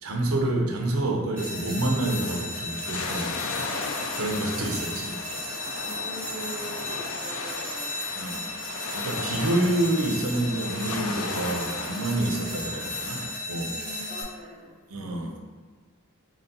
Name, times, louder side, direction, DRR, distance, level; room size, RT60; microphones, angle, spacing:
voice 1, 0.0-3.4 3.6-3.9 4.2-5.2 8.1-8.5 8.9-13.8 14.9-15.4, right 1 dB, 75° right, 1 dB, 0.6 m, -28 dB
sound 1, 1.4-14.2, left 1 dB, 5° left, 1.3 m, -35 dB
sound 2, 1.9-13.3, left 4 dB, 70° left, 0.4 m, -36 dB
voice 2, 5.8-8.0 13.8-14.8, equal, 35° right, -4 dB, 0.8 m, -42 dB
4.0 x 2.2 x 3.9 m, 1.5 s
head